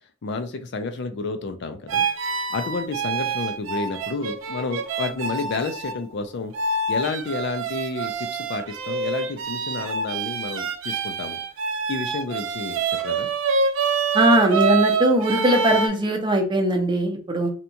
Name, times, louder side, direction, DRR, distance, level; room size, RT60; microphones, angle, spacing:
voice 1, 0.2-2.0 2.5-6.5 6.9-11.4 11.9-13.3, left 3 dB, 60° left, 7 dB, 0.4 m, -30 dB
sound 1, 1.9-6.0 6.5-15.9, right 4 dB, 80° right, 0.4 m, -26 dB
voice 2, 14.1-17.5, right 1 dB, 25° right, 3 dB, 0.6 m, -20 dB
2.8 x 2.3 x 2.6 m, 0.40 s
head